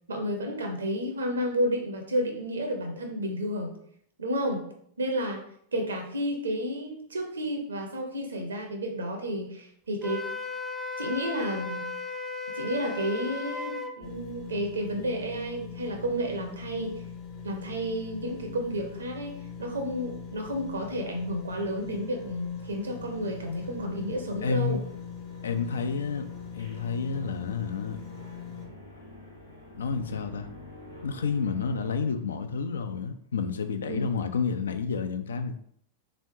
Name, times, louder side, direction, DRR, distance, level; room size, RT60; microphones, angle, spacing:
voice 1, 0.1-3.7 4.2-4.7 5.0-5.4 5.7-10.2 11.0-11.9 12.5-17.0 17.4-19.3 19.6-24.9 33.9-34.1, equal, 70° right, 3 dB, 0.7 m, -31 dB
Wind instrument woodwind instrument, 10.0-13.9, left 3 dB, 5° right, 0.4 m, -35 dB
sound 1, 14.0-28.7, left 7 dB, 35° left, 0.7 m, -42 dB
sound 2, 21.8-32.0, left 1 dB, 90° left, 0.7 m, -48 dB
voice 2, 24.4-24.8 25.4-26.3 26.5-28.0 29.8-30.5 31.0-35.6, left 5 dB, 65° left, 9 dB, 0.3 m, -30 dB
3.5 x 3.1 x 2.7 m, 0.66 s
figure-of-eight pair, 90°, 0 cm